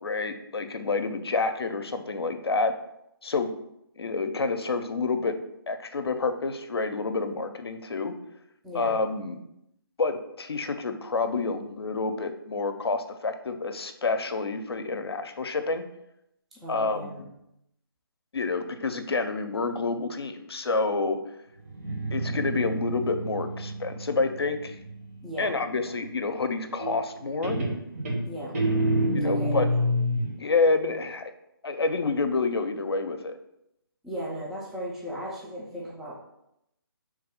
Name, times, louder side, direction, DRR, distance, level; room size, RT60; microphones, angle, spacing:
voice 1, 0.0-2.7 3.2-3.5 4.0-5.4 5.7-8.1 8.7-9.4 10.0-15.9 16.7-17.2 18.3-21.2 22.1-24.8 25.4-27.6 29.1-29.7 30.2-31.3 31.6-33.4, left 3 dB, 85° left, 8 dB, 0.5 m, -28 dB
voice 2, 8.6-9.0 16.5-17.3 25.2-25.5 28.3-28.5 29.2-29.5 34.0-36.2, equal, ahead, -6 dB, 0.4 m, -36 dB
Guitar, 21.7-25.3 26.8-27.2 27.4-30.4, equal, 40° right, 1.1 m, -28 dB
4.1 x 3.2 x 3.6 m, 0.81 s
figure-of-eight pair, 155°, 13 cm